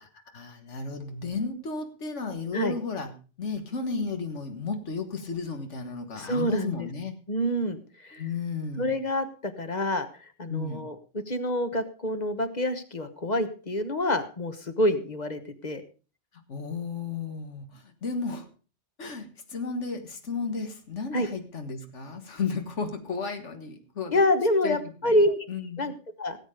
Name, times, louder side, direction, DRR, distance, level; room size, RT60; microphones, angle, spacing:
voice 1, 0.3-3.1 3.4-7.1 8.1-8.9 10.5-10.9 16.5-18.5 19.0-24.2 24.6-24.8 25.0-25.2 25.5-25.9, left 4 dB, 90° left, 6 dB, 1.9 m, -33 dB
voice 2, 6.1-6.9 7.3-8.2 8.8-15.8 21.1-21.3 24.1-25.4 25.8-25.9 26.2-26.4, left 1 dB, 40° left, 9 dB, 1.3 m, -27 dB
18.0 x 8.3 x 5.0 m, 0.37 s
omnidirectional pair, 1.2 m